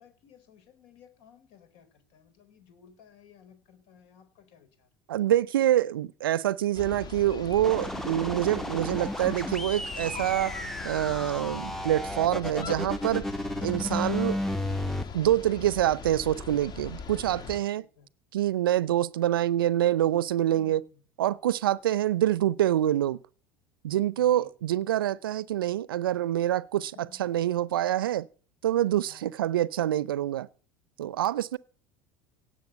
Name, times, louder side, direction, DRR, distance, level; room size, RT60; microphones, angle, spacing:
voice 1, 0.0-4.9 17.7-18.1 20.5-21.0 24.2-24.5 26.8-27.2 29.1-29.4, left 8 dB, 60° left, 4.3 m, -56 dB
voice 2, 5.1-10.5 10.8-13.3 13.6-14.4 15.1-17.8 18.3-20.8 21.2-23.2 23.8-26.9 27.2-28.3 28.6-30.5 31.0-31.6, right 12 dB, 75° right, 0.6 m, -26 dB
sound 1, 6.7-17.6, left 5 dB, 35° left, 2.2 m, -41 dB
sound 2, 7.6-15.0, left 1 dB, 5° left, 0.9 m, -33 dB
17.0 x 7.9 x 8.2 m
hypercardioid pair, 80°, 12 cm